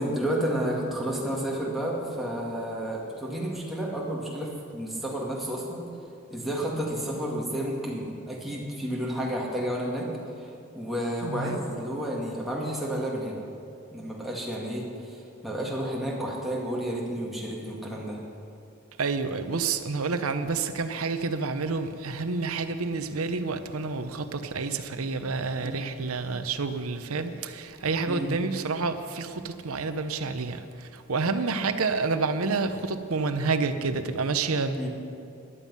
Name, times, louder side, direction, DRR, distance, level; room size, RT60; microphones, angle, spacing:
voice 1, 0.0-5.9 6.3-10.1 10.4-10.5 10.7-13.4 13.9-18.2 25.6-25.8 28.1-28.3 34.7-34.9, equal, ahead, -4 dB, 2.1 m, -31 dB
voice 2, 11.2-11.6 19.0-34.7, right 4 dB, 85° right, 9 dB, 0.9 m, -29 dB
14.5 x 11.5 x 5.6 m, 2.6 s
head